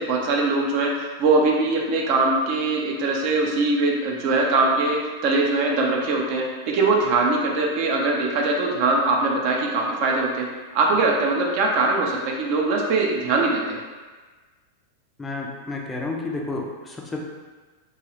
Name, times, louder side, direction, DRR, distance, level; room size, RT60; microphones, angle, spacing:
voice 1, 0.0-10.5 10.7-13.8, right 3 dB, 45° right, -1 dB, 0.5 m, -22 dB
voice 2, 15.2-17.2, left 3 dB, 15° left, -1 dB, 0.4 m, -31 dB
3.0 x 2.3 x 2.9 m, 1.3 s
figure-of-eight pair, 90°, 0 cm